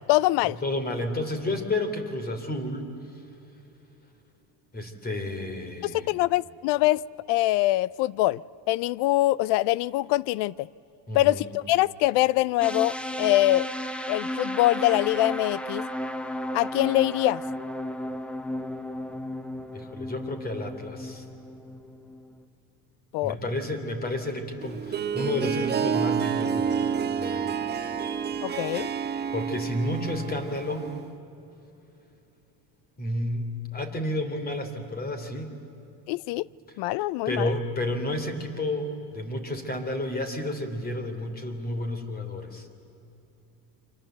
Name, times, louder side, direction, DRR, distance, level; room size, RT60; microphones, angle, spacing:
voice 1, 0.1-0.6 5.8-7.0 7.3-8.4 8.7-10.7 11.1-13.7 14.1-15.8 16.5-17.4 23.1-23.4 28.4-28.9 36.1-36.5 36.8-37.5, left 17 dB, 65° left, 23 dB, 0.6 m, -24 dB
voice 2, 0.6-2.9 4.7-6.1 11.1-11.4 19.7-21.3 23.2-27.7 29.3-30.9 33.0-35.5 37.3-42.7, left 1 dB, 20° left, 8 dB, 3.1 m, -31 dB
sound 1, 12.6-22.4, left 1 dB, 5° left, 0.9 m, -34 dB
Harp, 24.6-31.1, right 7 dB, 20° right, 1.2 m, -29 dB
29.5 x 25.0 x 7.9 m, 2.9 s
cardioid pair, 135°, 44 cm